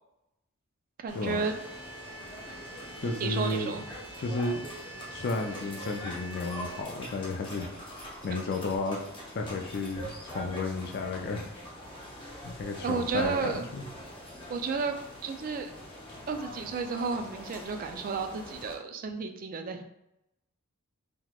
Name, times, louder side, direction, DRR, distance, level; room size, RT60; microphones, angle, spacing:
voice 1, 1.0-1.5 3.0-3.8 12.8-13.6 14.5-15.7 16.3-19.8, right 4 dB, 40° right, 6 dB, 0.3 m, -32 dB
sound 1, 1.1-18.7, equal, 25° left, 0.8 m, -44 dB
sound 2, 1.4-6.8, right 1 dB, 80° right, 1.1 m, -46 dB
voice 2, 3.0-3.8 4.2-4.6 5.1-7.7 8.2-9.0 9.3-11.5 12.4-13.8, left 3 dB, 45° left, 2 dB, 0.4 m, -32 dB
3.9 x 2.9 x 2.3 m, 0.85 s
head